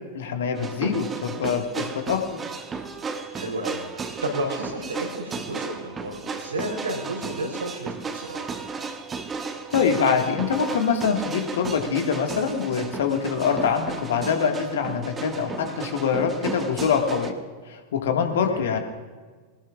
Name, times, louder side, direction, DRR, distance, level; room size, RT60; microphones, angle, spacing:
voice 1, 0.1-2.2 9.7-17.3 17.7-18.8, left 6 dB, 60° left, 4 dB, 1.7 m, -24 dB
sound 1, 0.5-17.3, right 5 dB, 20° right, 1.2 m, -34 dB
voice 2, 3.3-8.5 18.5-18.7, right 1 dB, 75° right, 1 dB, 3.8 m, -32 dB
22.5 x 18.5 x 2.4 m, 1.5 s
figure-of-eight pair, 90°, 0 cm